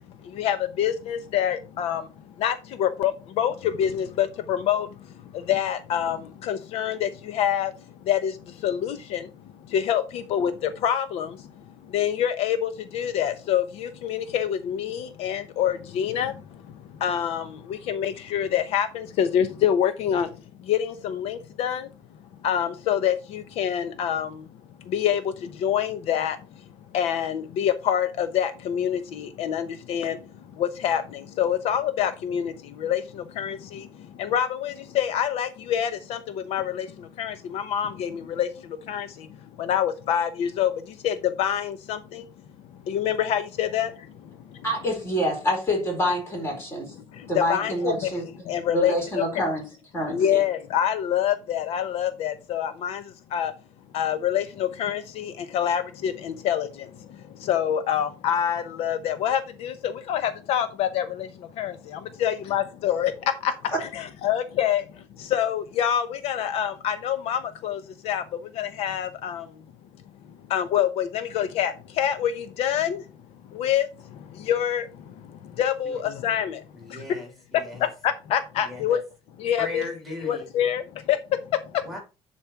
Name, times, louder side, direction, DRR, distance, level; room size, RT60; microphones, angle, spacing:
voice 1, 0.2-9.3 9.6-20.3 20.6-21.9 22.4-24.5 24.8-26.6 26.9-42.2 42.7-44.6 47.1-48.1 48.4-49.2 50.1-53.5 53.9-69.5 70.5-73.1 73.5-77.2 77.5-79.0 79.4-79.9 80.2-81.8, left 9 dB, 75° left, 0.9 m, -27 dB
voice 2, 44.6-46.9 47.2-48.2 48.7-49.6 49.9-50.4 63.7-63.8, equal, 25° left, 4.6 m, -26 dB
voice 3, 76.7-77.9 78.6-79.0 79.6-80.5 81.8-82.0, left 1 dB, ahead, 3.2 m, -38 dB
10.5 x 4.4 x 4.5 m
cardioid pair, 175°, 10 cm